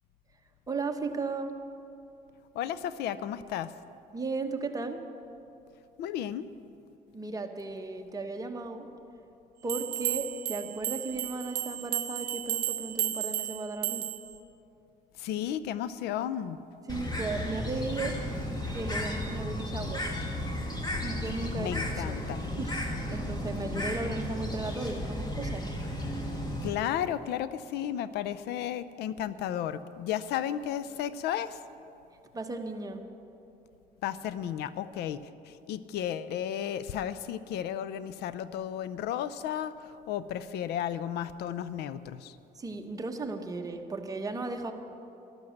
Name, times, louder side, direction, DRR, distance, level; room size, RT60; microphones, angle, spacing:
voice 1, 0.7-1.5 4.1-5.0 7.1-8.9 9.6-14.0 16.9-18.1 18.7-20.0 21.0-22.2 22.6-22.7 23.1-25.6 32.3-33.0 42.5-44.7, right 3 dB, 20° right, 4 dB, 1.2 m, -35 dB
voice 2, 2.5-3.7 6.0-6.5 15.2-16.6 21.6-22.4 23.7-23.8 26.6-31.6 34.0-42.4, left 10 dB, 80° left, 15 dB, 0.5 m, -33 dB
sound 1, 9.7-14.3, right 13 dB, 70° right, 0.7 m, -33 dB
Bird, 16.9-26.7, left 1 dB, 25° left, 1.9 m, -34 dB
13.0 x 12.0 x 6.4 m, 2.7 s
cardioid pair, 110°, 17 cm